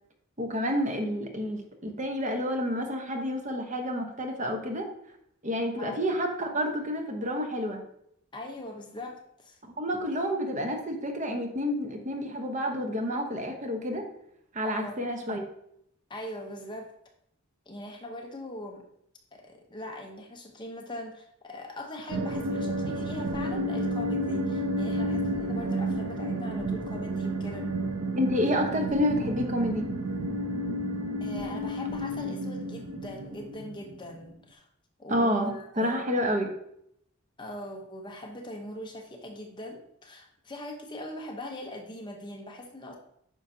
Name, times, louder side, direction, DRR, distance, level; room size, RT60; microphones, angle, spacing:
voice 1, 0.4-4.9 5.4-7.8 9.8-14.0 14.5-15.4 28.1-29.9 35.1-36.5, equal, 35° right, 3 dB, 0.9 m, -29 dB
voice 2, 8.3-9.6 14.6-15.1 16.1-16.9 17.7-18.8 19.3-27.8 31.2-34.7 35.0-36.1 37.4-43.0, left 1 dB, 20° left, 2 dB, 0.8 m, -41 dB
sound 1, 22.1-34.1, right 1 dB, 90° right, 0.6 m, -31 dB
9.2 x 5.7 x 2.7 m, 0.73 s
head